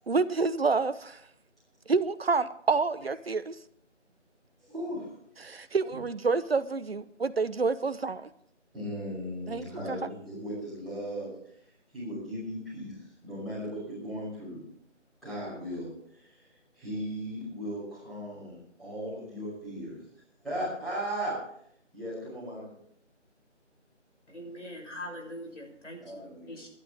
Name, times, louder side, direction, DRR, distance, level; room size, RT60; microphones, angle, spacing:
voice 1, 0.1-1.2 1.9-3.5 5.4-8.3 9.5-10.0, right 4 dB, 55° right, 1.0 m, -28 dB
voice 2, 4.6-5.0 5.5-5.6 5.9-6.0 8.7-11.3 11.9-12.9 13.2-14.6 15.2-15.9 16.2-16.3 16.7-20.0 20.4-21.3 21.9-22.7 26.0-26.6, equal, ahead, 5.9 m, -37 dB
voice 3, 24.3-26.2 26.5-26.7, left 1 dB, 80° left, 6.9 m, -42 dB
27.0 x 11.5 x 3.5 m
figure-of-eight pair, 165°, 36 cm